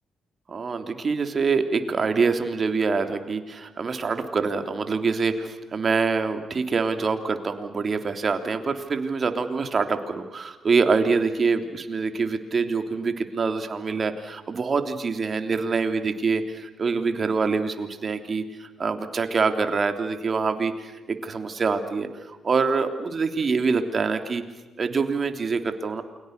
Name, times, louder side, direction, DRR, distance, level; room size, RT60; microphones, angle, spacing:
voice 1, 0.5-24.4 24.8-26.0, right 4 dB, 45° right, 7 dB, 3.3 m, -25 dB
29.0 x 25.0 x 6.8 m, 1.2 s
hypercardioid pair, 50°, 0 cm